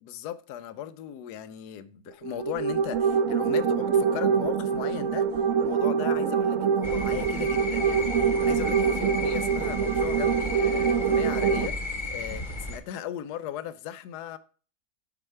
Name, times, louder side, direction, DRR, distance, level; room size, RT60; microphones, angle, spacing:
voice 1, 0.0-14.4, left 11 dB, 85° left, 1.1 m, -37 dB
sound 1, 2.2-11.7, right 6 dB, 65° right, 1.0 m, -25 dB
sound 2, 6.8-12.8, left 2 dB, 35° left, 1.1 m, -34 dB
7.5 x 4.7 x 4.3 m
omnidirectional pair, 1.7 m